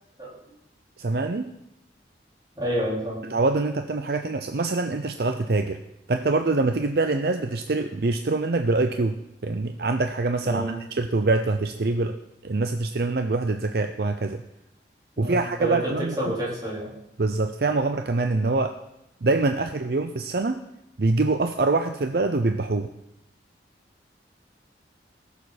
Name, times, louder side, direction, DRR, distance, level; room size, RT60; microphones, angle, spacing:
voice 1, 1.0-1.5 3.3-5.8 6.1-9.2 9.4-12.2 12.4-14.4 15.2-16.3 17.2-18.8 19.2-20.6 21.0-22.9, right 3 dB, 55° right, 7 dB, 0.6 m, -24 dB
voice 2, 2.6-3.2 10.4-10.8 15.2-16.9, equal, 20° right, -7 dB, 4.1 m, -28 dB
19.5 x 7.0 x 4.2 m, 0.83 s
head